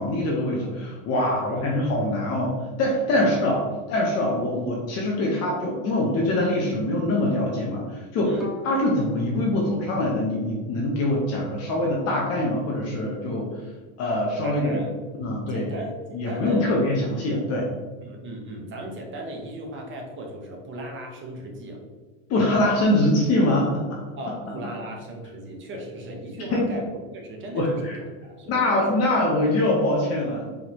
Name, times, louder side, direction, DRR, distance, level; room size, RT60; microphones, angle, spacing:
voice 1, 0.0-3.6 3.9-8.3 8.6-13.5 14.0-14.8 15.2-15.7 16.1-17.7 22.3-24.0 26.5-26.6 27.5-28.0 28.5-30.5, left 1 dB, 40° left, -2 dB, 0.9 m, -24 dB
voice 2, 1.2-1.6 3.1-3.3 8.2-8.5 14.4-15.0 15.5-16.9 18.0-21.8 24.2-26.9 27.1-29.0, right 1 dB, 30° right, 1 dB, 0.9 m, -37 dB
Bowed string instrument, 8.4-11.5, left 3 dB, ahead, 0.6 m, -43 dB
4.8 x 3.6 x 3.0 m, 1.3 s
cardioid pair, 150°, 39 cm